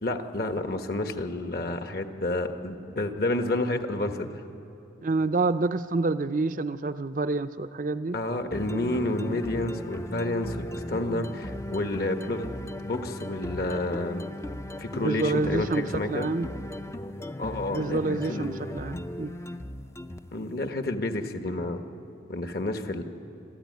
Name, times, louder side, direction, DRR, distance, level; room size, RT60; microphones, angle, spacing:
voice 1, 0.0-4.4 8.1-12.4 12.8-14.3 14.8-16.3 17.4-18.5 20.3-21.8 22.3-23.0, left 2 dB, 55° left, 7 dB, 1.3 m, -30 dB
voice 2, 5.0-8.2 11.1-11.3 15.0-16.5 17.7-19.3, right 3 dB, 45° right, 12 dB, 0.5 m, -28 dB
sound 1, 8.5-20.4, left 1 dB, 15° left, 0.5 m, -37 dB
27.0 x 13.5 x 9.4 m, 2.8 s
head